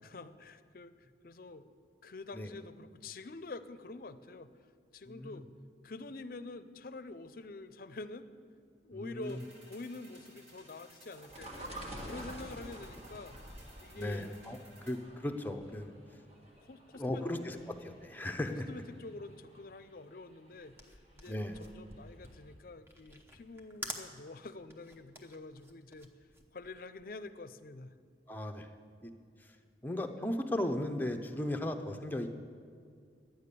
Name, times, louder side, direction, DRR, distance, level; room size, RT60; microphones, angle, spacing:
voice 1, 0.0-0.9 1.2-4.5 4.9-5.5 5.8-8.3 8.8-9.4 9.7-13.4 13.8-14.3 16.6-17.2 18.2-18.3 18.7-26.1 26.5-27.9, left 3 dB, 55° left, 13 dB, 0.5 m, -47 dB
voice 2, 5.1-5.5 8.9-9.3 14.0-14.6 14.9-15.9 17.0-18.7 21.3-21.6 28.3-28.7 29.0-29.1 29.8-32.3, left 1 dB, 10° left, 5 dB, 0.7 m, -36 dB
sound 1, 9.2-14.9, right 1 dB, 85° right, 4.0 m, -59 dB
sound 2, 11.2-21.9 22.3-22.4, right 1 dB, 35° right, 1.6 m, -49 dB
sound 3, 20.6-27.3, right 1 dB, 15° right, 0.9 m, -48 dB
11.5 x 9.1 x 6.8 m, 2.2 s
head